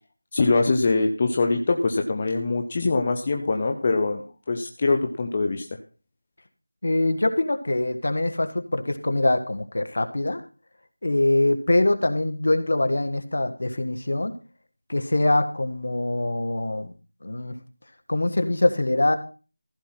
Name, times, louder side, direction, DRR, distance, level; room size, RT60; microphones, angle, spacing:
voice 1, 0.3-5.7, left 3 dB, 20° left, 4 dB, 0.7 m, -23 dB
voice 2, 6.8-10.4 11.0-14.4 14.9-16.9 17.2-17.5 18.1-19.2, left 2 dB, 50° left, 8 dB, 1.5 m, -23 dB
15.0 x 5.8 x 5.9 m, 0.35 s
figure-of-eight pair, 175°, 0 cm